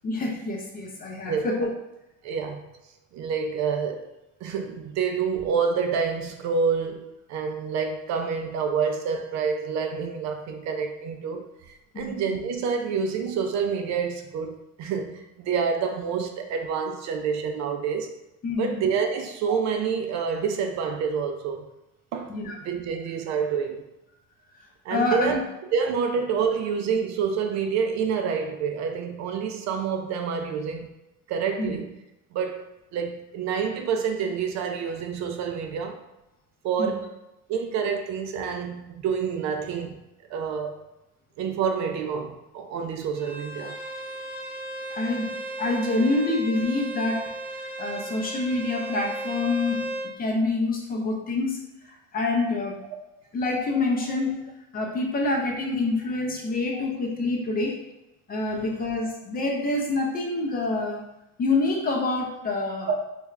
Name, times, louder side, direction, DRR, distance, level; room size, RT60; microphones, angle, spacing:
voice 1, 0.0-1.7 11.9-12.3 18.4-18.8 22.3-22.6 24.9-25.4 31.6-31.8 36.8-37.0 44.9-47.3 47.6-49.9 50.2-52.8 53.3-57.8 58.3-61.0 61.4-62.9, left 2 dB, 25° left, 0.5 m, -27 dB
voice 2, 2.2-2.6 3.1-4.1 4.4-18.1 18.6-21.7 22.1-22.3 22.6-23.8 24.8-25.4 25.7-30.9 31.3-31.9 32.3-32.6 32.9-36.0 36.6-37.1 37.5-40.0 40.3-40.8 41.4-43.8 56.7-56.8 62.9-63.0, right 6 dB, 50° right, 0.4 m, -28 dB
Bowed string instrument, 43.2-50.1, right 2 dB, 5° right, 1.1 m, -35 dB
3.3 x 3.2 x 2.4 m
cardioid pair, 140°, 35 cm